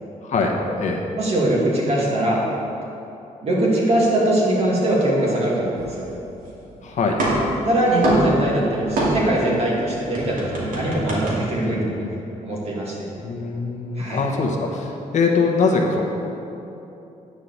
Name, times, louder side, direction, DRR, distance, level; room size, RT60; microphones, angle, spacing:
voice 1, 0.2-1.0 6.8-7.2 11.6-12.2 13.2-16.0, left 4 dB, 60° left, 0 dB, 1.2 m, -23 dB
voice 2, 1.2-2.4 3.4-6.1 7.7-11.9 12.4-13.1 14.0-14.2, right 1 dB, 45° right, -4 dB, 2.4 m, -21 dB
sound 1, 5.8-6.7 7.0-9.5 9.8-11.3, right 1 dB, 80° right, 2.4 m, -25 dB
9.5 x 4.9 x 7.2 m, 2.9 s
cardioid pair, 120°, 14 cm